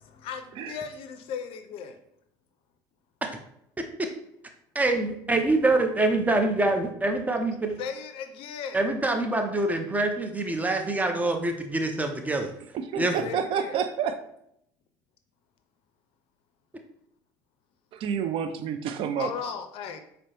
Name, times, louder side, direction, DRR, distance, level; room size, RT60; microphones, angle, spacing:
voice 1, 0.0-2.0 7.8-8.9 13.2-13.8 19.2-20.0, left 7 dB, 65° left, 8 dB, 0.4 m, -36 dB
voice 2, 3.8-4.1 4.7-7.8 8.7-12.5 13.0-13.1, right 2 dB, 15° right, 4 dB, 0.6 m, -25 dB
voice 3, 12.7-14.3 17.9-19.3, right 7 dB, 60° right, 9 dB, 0.4 m, -29 dB
4.4 x 2.1 x 2.9 m, 0.74 s
hypercardioid pair, 70°, 10 cm